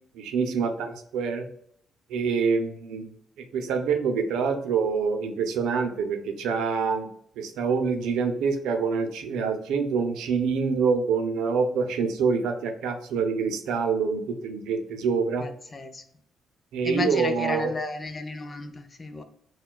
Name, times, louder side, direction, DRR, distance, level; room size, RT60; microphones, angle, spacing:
voice 1, 0.1-1.4 2.1-7.1 7.4-15.4 16.7-17.7, right 5 dB, 90° right, 0.5 m, -26 dB
voice 2, 15.4-16.0 16.8-19.2, left 3 dB, 30° left, 0.5 m, -33 dB
4.4 x 2.2 x 2.2 m
cardioid pair, 90°, 0 cm